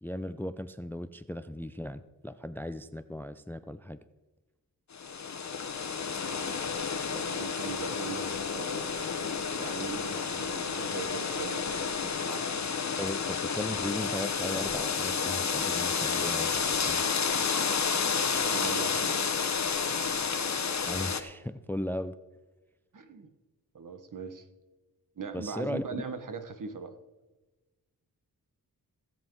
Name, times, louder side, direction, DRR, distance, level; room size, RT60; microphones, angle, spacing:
voice 1, 0.0-4.0 7.1-7.2 13.0-17.0 20.8-22.2 25.3-26.0, left 1 dB, 5° left, 13 dB, 0.4 m, -37 dB
sound 1, 4.9-21.2, left 6 dB, 45° left, 1.1 m, -30 dB
voice 2, 6.9-8.9 9.5-12.7 18.3-19.2 22.9-23.3 23.7-24.5 25.2-26.9, right 5 dB, 55° right, 9 dB, 1.3 m, -41 dB
16.0 x 7.5 x 4.6 m, 1.2 s
cardioid pair, 70°, 38 cm